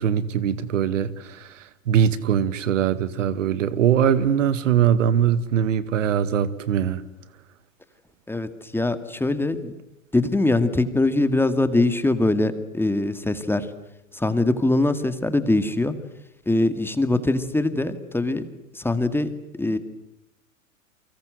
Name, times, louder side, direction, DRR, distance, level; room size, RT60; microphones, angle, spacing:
voice 1, 0.0-7.0, right 9 dB, 70° right, 2.1 m, -22 dB
voice 2, 8.3-9.7 10.1-13.7 14.1-15.9 16.5-18.4 18.7-19.3 19.6-19.8, left 2 dB, 5° left, 2.1 m, -22 dB
30.0 x 24.5 x 7.8 m
hypercardioid pair, 100°, 40 cm